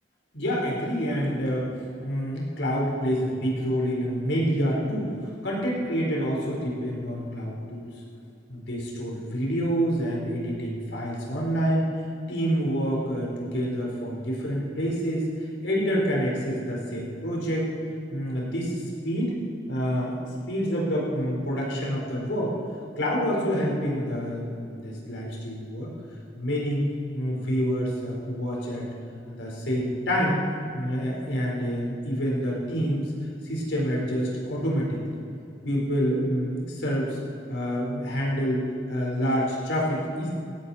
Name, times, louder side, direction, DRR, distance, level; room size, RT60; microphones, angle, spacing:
voice 1, 0.3-5.1 5.4-7.9 8.5-11.9 12.3-17.7 18.1-19.4 19.7-20.2 20.5-22.6 23.0-25.9 26.4-26.9 27.1-28.9 29.3-30.4 30.7-33.1 33.4-35.2 35.6-37.2 37.5-40.3, equal, 85° left, -3 dB, 4.4 m, -27 dB
17.0 x 14.5 x 4.3 m, 2.7 s
head